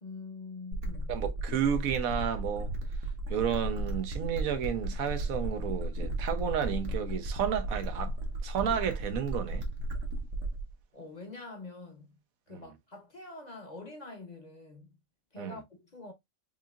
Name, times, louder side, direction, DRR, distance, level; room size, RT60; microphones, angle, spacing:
voice 1, 0.0-1.2 10.9-12.1 12.5-14.9 15.3-16.1, left 3 dB, 35° left, 0.8 m, -45 dB
sound 1, 0.7-10.7, right 1 dB, 65° right, 1.4 m, -35 dB
voice 2, 1.1-2.7 3.3-8.1 8.4-9.7 12.5-12.6 15.4-15.6, right 8 dB, 85° right, 1.2 m, -32 dB
5.3 x 2.7 x 2.4 m
omnidirectional pair, 1.4 m